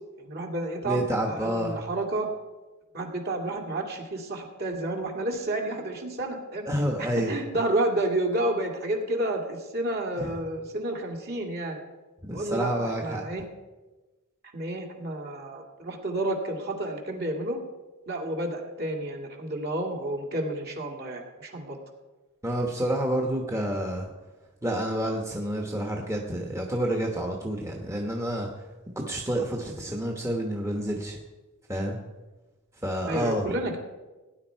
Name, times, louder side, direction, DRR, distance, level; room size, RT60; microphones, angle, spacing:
voice 1, 0.2-1.0 1.3-2.3 2.9-6.7 7.0-11.8 12.3-13.4 14.5-17.6 18.1-21.8 33.1-33.8, right 1 dB, 45° right, 2 dB, 2.2 m, -30 dB
voice 2, 0.8-1.8 6.7-7.3 10.2-10.4 12.2-13.2 22.4-24.1 24.6-28.5 29.0-31.2 31.7-32.0 32.8-33.5, right 1 dB, 15° right, 0 dB, 1.2 m, -29 dB
17.0 x 10.0 x 4.6 m, 1.2 s
head